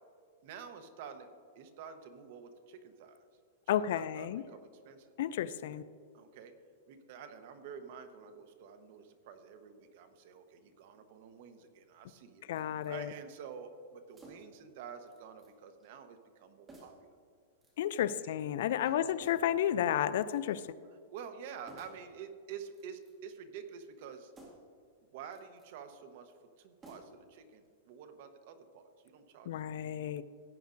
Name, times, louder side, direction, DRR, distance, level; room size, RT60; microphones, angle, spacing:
voice 1, 0.4-3.2 3.7-5.1 6.1-6.5 6.9-17.1 18.1-18.3 18.8-19.1 21.1-24.3 25.1-29.6, right 7 dB, 50° right, 8 dB, 1.0 m, -49 dB
voice 2, 3.7-4.4 5.2-5.8 12.5-13.1 17.8-20.6 29.5-30.2, left 10 dB, 60° left, 16 dB, 0.4 m, -32 dB
sound 1, 12.5-13.0 14.1-14.6 15.1-15.5 15.8-15.9 16.7-17.1 17.6-18.2 19.2-19.6 20.0-20.6 21.7-22.1 22.7-23.3 24.3-24.8 25.2-25.7 26.8-27.3 27.6-27.7, right 1 dB, 15° right, 2.0 m, -57 dB
16.5 x 9.4 x 2.6 m, 2.2 s
supercardioid pair, 160°, 0 cm